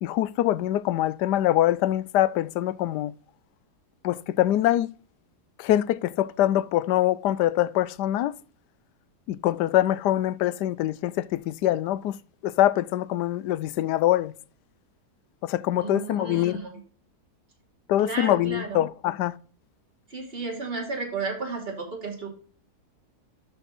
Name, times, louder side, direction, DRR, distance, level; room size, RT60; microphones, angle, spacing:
voice 1, 0.0-3.1 4.0-4.9 5.6-8.3 9.3-12.2 12.4-14.3 15.4-16.6 17.9-19.3, left 13 dB, 85° left, 1.2 m, -24 dB
voice 2, 15.8-16.7 18.0-18.8 20.1-22.3, right 4 dB, 35° right, 3.2 m, -33 dB
12.5 x 4.4 x 4.1 m
omnidirectional pair, 1.7 m